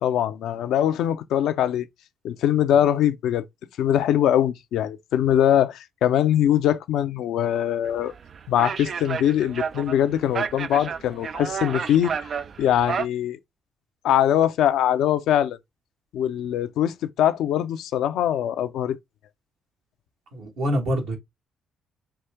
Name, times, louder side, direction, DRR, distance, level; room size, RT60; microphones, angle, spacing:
voice 1, 0.0-1.9 2.2-3.4 3.8-8.1 8.5-12.1 12.6-13.4 14.0-15.6 16.1-19.0, left 10 dB, 70° left, 0.4 m, -22 dB
sound 1, 7.8-13.1, right 6 dB, 55° right, 0.3 m, -31 dB
voice 2, 20.3-21.2, equal, 70° right, 1.5 m, -25 dB
5.7 x 2.5 x 3.4 m
hypercardioid pair, 45°, 0 cm